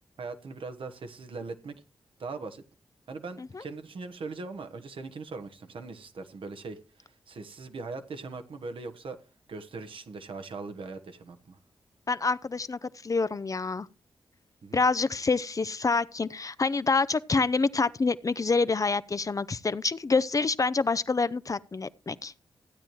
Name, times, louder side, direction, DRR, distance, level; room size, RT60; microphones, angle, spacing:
voice 1, 0.2-1.8 2.2-2.6 3.1-9.2 9.5-11.6 14.6-14.8, right 4 dB, 65° right, 1.1 m, -40 dB
voice 2, 12.1-13.9 14.7-22.3, left 4 dB, 35° left, 0.5 m, -27 dB
15.0 x 8.9 x 3.1 m
supercardioid pair, 45°, 10 cm